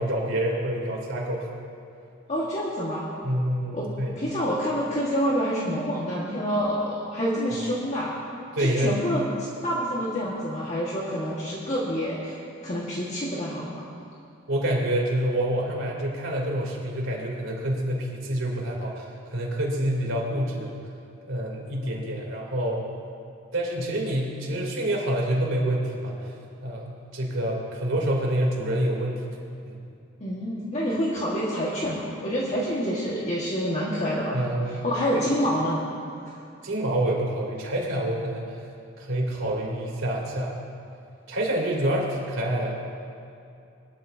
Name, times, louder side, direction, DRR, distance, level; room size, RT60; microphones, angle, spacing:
voice 1, 0.0-1.5 3.2-4.2 8.5-9.0 14.5-20.7 21.2-22.8 23.5-26.3 26.6-29.4 29.7-29.8 34.3-34.8 35.1-35.2 36.6-38.4 39.0-40.5 41.3-42.8, right 1 dB, 85° right, -2 dB, 3.1 m, -27 dB
voice 2, 2.3-3.1 3.7-3.9 4.1-8.2 8.6-9.3 9.6-12.4 12.6-13.8 30.2-34.4 34.7-35.8 36.2-36.3, equal, 35° left, -6 dB, 1.6 m, -27 dB
22.0 x 12.5 x 2.7 m, 2.6 s
head